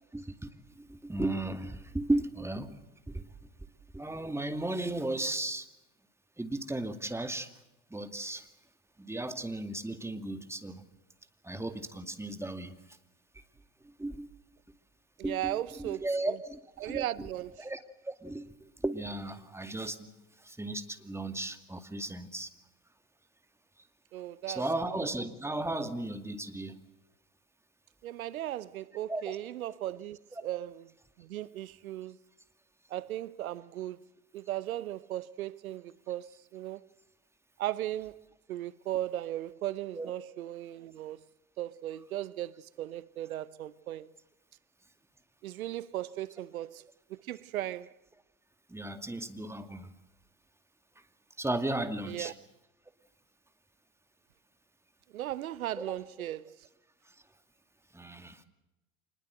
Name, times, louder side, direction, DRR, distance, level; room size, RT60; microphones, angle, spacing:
voice 1, 0.1-2.8 3.1-3.3 3.9-5.7 6.4-7.5 7.9-8.5 9.0-10.8 11.4-12.8 14.0-14.3 15.2-17.3 17.6-17.8 18.1-20.1 20.4-22.5 24.5-26.8 29.1-29.4 40.0-40.1 48.7-49.9 51.4-52.3 55.8-56.0 57.9-58.4, right 2 dB, 5° right, 2.3 m, -35 dB
voice 2, 15.2-16.4 16.8-17.7 24.1-24.7 28.0-30.9 31.2-32.2 32.9-34.0 34.3-36.8 37.6-38.2 38.5-41.2 41.6-44.1 45.4-46.8 47.1-47.9 52.1-52.3 55.1-56.6, right 13 dB, 85° right, 0.8 m, -37 dB
26.0 x 20.5 x 7.9 m
hypercardioid pair, 85°, 41 cm